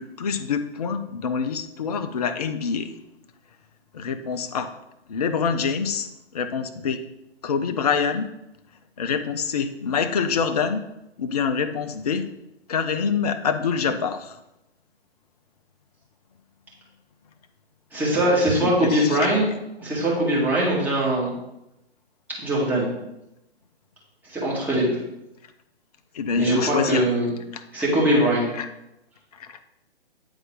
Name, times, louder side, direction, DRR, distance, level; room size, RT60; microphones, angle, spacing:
voice 1, 0.0-2.9 3.9-4.7 5.1-7.0 7.4-8.3 9.0-10.8 11.2-12.3 12.7-14.4 18.6-19.3 26.1-27.1 27.5-27.6 28.5-28.7 29.4-29.6, left 6 dB, 40° left, 8 dB, 0.4 m, -26 dB
voice 2, 17.9-19.5 19.8-21.3 22.4-22.9 24.3-25.0 26.4-27.3 27.7-28.5, right 1 dB, 5° right, -6 dB, 1.5 m, -21 dB
8.9 x 3.9 x 3.7 m, 0.89 s
figure-of-eight pair, 130°, 33 cm